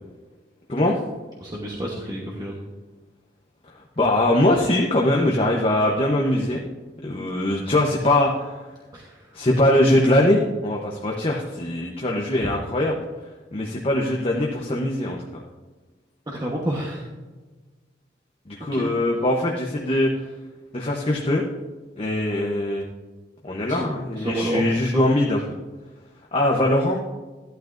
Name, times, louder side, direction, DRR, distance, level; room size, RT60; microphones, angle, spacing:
voice 1, 0.7-1.0 4.0-6.6 7.0-8.6 9.3-13.0 13.5-15.4 18.5-20.1 20.7-21.4 22.0-22.8 23.4-25.4 26.3-27.0, left 1 dB, 30° left, -1 dB, 0.9 m, -21 dB
voice 2, 1.4-2.6 8.9-9.3 12.4-12.5 16.3-17.1 18.7-18.9 23.7-23.9 24.2-24.6 24.9-25.0, right 1 dB, 20° right, -3 dB, 1.1 m, -29 dB
14.0 x 11.5 x 2.6 m, 1.3 s
head